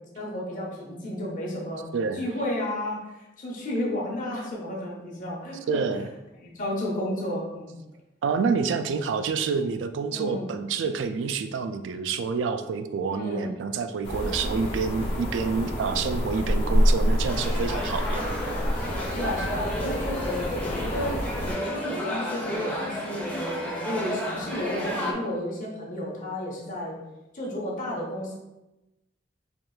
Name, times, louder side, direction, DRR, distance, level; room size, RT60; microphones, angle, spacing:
voice 1, 0.1-5.8 6.4-7.7 10.1-10.5 13.1-13.5 19.1-23.4 23.6-27.0 27.3-28.4, left 1 dB, 45° left, -3 dB, 0.9 m, -32 dB
voice 2, 1.9-2.2 5.7-6.1 8.2-18.3, right 5 dB, 80° right, 10 dB, 0.3 m, -28 dB
sound 1, 14.0-21.5, equal, 65° left, 1.0 m, -27 dB
sound 2, 17.3-25.1, equal, 10° left, 0.5 m, -32 dB
4.6 x 2.9 x 2.3 m, 0.98 s
head